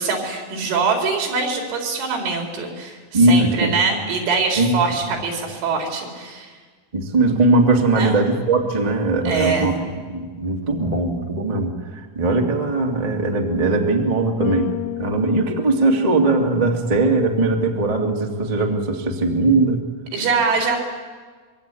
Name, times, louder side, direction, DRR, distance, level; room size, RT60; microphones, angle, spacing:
voice 1, 0.0-6.5 7.9-8.2 9.2-9.8 20.1-20.8, right 4 dB, 85° right, 2 dB, 6.7 m, -23 dB
voice 2, 3.1-3.7 4.6-4.7 6.9-9.7 10.1-11.7 12.1-14.7 15.0-19.8, right 2 dB, 60° right, 2 dB, 0.4 m, -19 dB
Bass guitar, 14.4-16.7, left 15 dB, 70° left, 2.8 m, -31 dB
25.0 x 23.0 x 9.1 m, 1.5 s
omnidirectional pair, 5.5 m